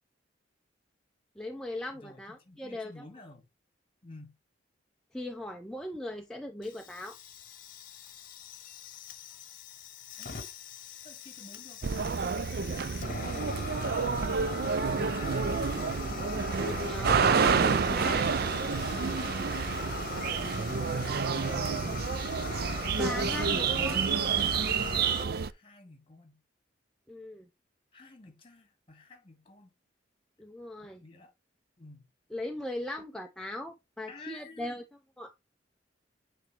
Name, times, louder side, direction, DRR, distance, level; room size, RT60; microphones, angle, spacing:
voice 1, 1.4-2.9 5.1-7.2 16.6-18.3 23.0-24.1 27.1-27.5 30.4-31.0 32.3-34.8 35.2-35.3, left 1 dB, 5° left, 0.5 m, -38 dB
voice 2, 1.9-3.5 4.0-4.4 10.2-10.5 11.0-13.7 14.1-15.5 19.7-20.5 20.9-23.6 25.3-26.4 27.9-29.7 30.8-31.3 31.8-32.1 34.1-34.8, left 2 dB, 30° left, 2.1 m, -51 dB
Fire, 6.6-25.2, left 4 dB, 50° left, 1.1 m, -40 dB
sound 1, 11.8-25.5, right 6 dB, 55° right, 0.4 m, -29 dB
9.0 x 3.6 x 3.3 m
head